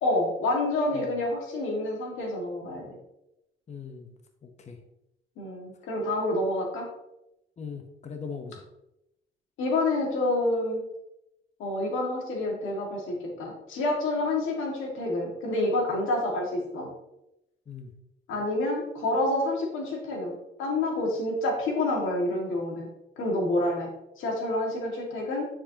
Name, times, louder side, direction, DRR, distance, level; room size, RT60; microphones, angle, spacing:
voice 1, 0.0-3.0 5.4-6.9 9.6-10.8 11.6-16.9 18.3-22.9 23.2-23.9 24.2-25.5, left 2 dB, 85° left, 0 dB, 2.0 m, -28 dB
voice 2, 3.7-4.1 4.6-4.8 7.6-8.6 17.7-17.9, left 6 dB, 35° left, 4 dB, 0.9 m, -39 dB
9.9 x 4.9 x 2.9 m, 0.88 s
cardioid pair, 90°, 20 cm